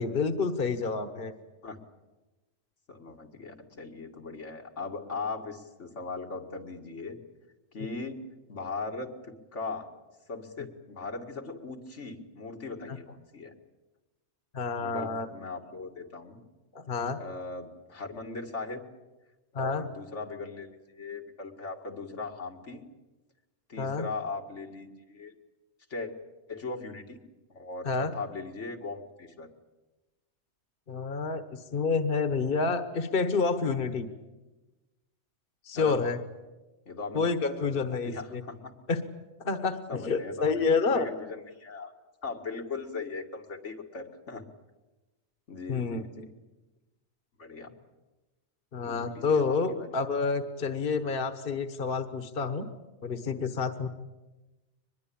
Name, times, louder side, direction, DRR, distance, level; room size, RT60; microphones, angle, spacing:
voice 1, 0.0-1.3 12.9-13.0 14.5-15.3 16.7-17.2 19.5-19.8 23.8-24.1 27.8-28.1 30.9-34.1 35.6-36.2 37.1-38.4 38.9-39.0 39.4-41.1 45.7-46.3 48.7-52.7 53.0-53.9, left 4 dB, 50° left, 10 dB, 1.4 m, -29 dB
voice 2, 2.9-7.2 7.7-8.1 8.5-9.9 10.3-13.5 14.8-16.4 17.2-18.9 19.5-22.8 23.7-25.3 25.9-26.1 26.5-27.2 27.5-29.5 35.7-36.1 36.9-37.3 37.6-38.6 39.9-41.9 42.2-44.4 45.5-46.2 47.4-47.7 48.9-49.9, left 3 dB, 90° left, 2 dB, 2.5 m, -39 dB
24.0 x 21.0 x 8.7 m, 1.1 s
omnidirectional pair, 1.2 m